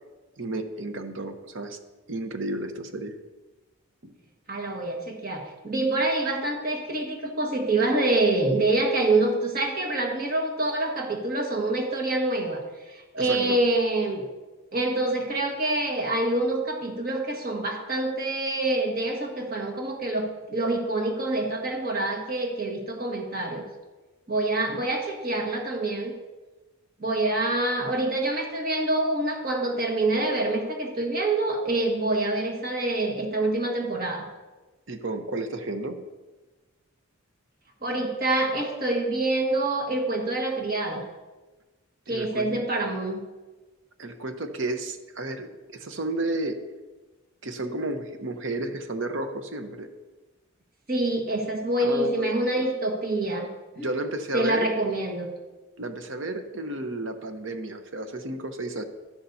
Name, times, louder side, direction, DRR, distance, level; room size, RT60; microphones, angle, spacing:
voice 1, 0.4-1.8 2.1-3.2 4.0-4.1 13.2-13.6 34.9-36.0 42.1-42.7 44.0-46.7 47.4-49.9 51.8-52.7 53.8-54.7 55.8-58.8, right 2 dB, 60° right, 7 dB, 0.9 m, -32 dB
voice 2, 4.5-14.2 14.7-23.7 24.3-26.2 27.0-34.3 37.8-41.0 42.1-43.2 50.9-53.5 53.8-53.9 54.3-55.3, right 2 dB, 40° right, 1 dB, 1.6 m, -26 dB
13.0 x 11.5 x 2.7 m, 1.2 s
head